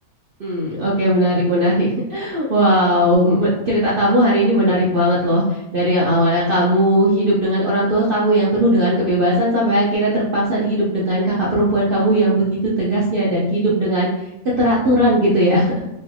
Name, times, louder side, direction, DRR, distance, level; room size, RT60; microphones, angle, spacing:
voice 1, 0.4-14.1 14.6-15.8, equal, 65° right, -6 dB, 0.5 m, -18 dB
3.1 x 2.6 x 2.3 m, 0.94 s
omnidirectional pair, 1.6 m